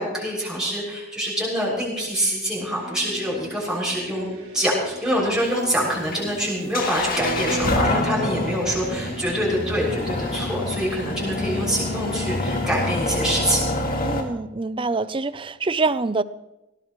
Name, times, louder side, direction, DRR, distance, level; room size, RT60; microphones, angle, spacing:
voice 1, 0.0-4.3 4.5-13.7, equal, 5° right, -5 dB, 6.7 m, -25 dB
sound 1, 2.5-12.8, right 1 dB, 75° right, 4.5 m, -40 dB
sound 2, 5.1-14.2, left 2 dB, 45° left, 2.2 m, -27 dB
sound 3, 7.2-10.2, equal, 55° right, 2.9 m, -31 dB
voice 2, 14.0-16.2, right 3 dB, 25° right, 15 dB, 0.5 m, -25 dB
20.5 x 18.0 x 3.2 m, 0.97 s
head